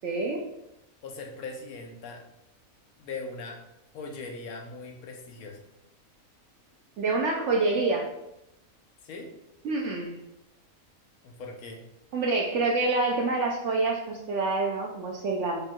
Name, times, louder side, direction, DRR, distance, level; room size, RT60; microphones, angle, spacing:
voice 1, 0.0-0.4 7.0-8.1 9.6-10.2 12.1-15.6, right 3 dB, 65° right, -1 dB, 0.8 m, -27 dB
voice 2, 1.0-2.2 3.0-3.6 3.9-5.6 9.0-9.3 11.2-11.8, left 3 dB, 85° left, 2 dB, 1.2 m, -40 dB
5.1 x 2.3 x 4.4 m, 0.89 s
omnidirectional pair, 1.5 m